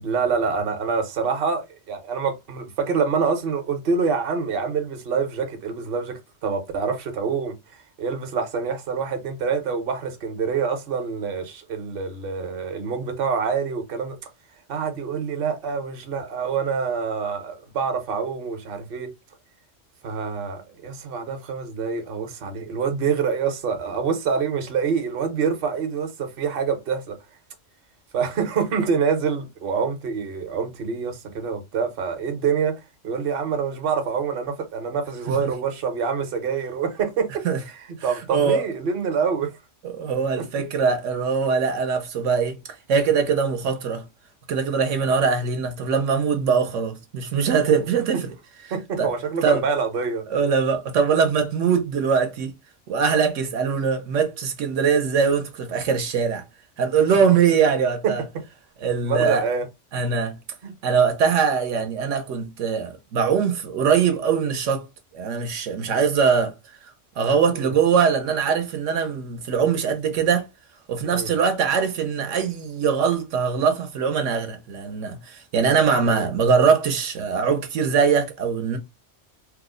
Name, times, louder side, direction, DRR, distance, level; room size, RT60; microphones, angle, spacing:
voice 1, 0.0-7.6 8.0-14.2 14.7-19.1 20.0-27.2 28.1-37.4 38.0-39.5 40.4-40.5 47.6-47.8 48.7-50.2 58.0-58.4 59.0-59.6 60.6-60.7 67.5-67.7 71.0-71.3 76.0-76.3, right 6 dB, 55° right, 0.9 m, -26 dB
voice 2, 38.3-38.7 39.8-42.6 42.9-44.0 44.5-48.3 49.0-49.1 49.4-49.6 50.3-52.5 52.9-56.4 56.8-58.2 58.8-59.5 59.9-60.4 60.8-64.9 65.1-66.5 67.2-70.5 70.9-78.8, right 6 dB, 80° right, 1.0 m, -22 dB
3.1 x 2.0 x 3.6 m
omnidirectional pair, 1.3 m